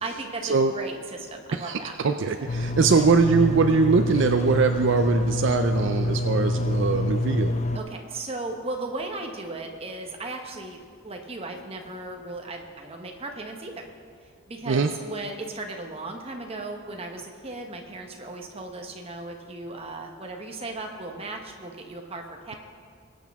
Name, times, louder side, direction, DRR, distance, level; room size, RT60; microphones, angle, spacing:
voice 1, 0.0-2.0 2.9-3.1 3.4-3.6 7.7-13.9 14.5-22.5, right 2 dB, 30° right, 2 dB, 1.0 m, -36 dB
voice 2, 1.5-7.5 14.7-14.9, right 4 dB, 60° right, 7 dB, 0.4 m, -22 dB
sound 1, 2.5-7.8, left 1 dB, 30° left, 0.5 m, -26 dB
20.5 x 8.3 x 3.5 m, 2.2 s
head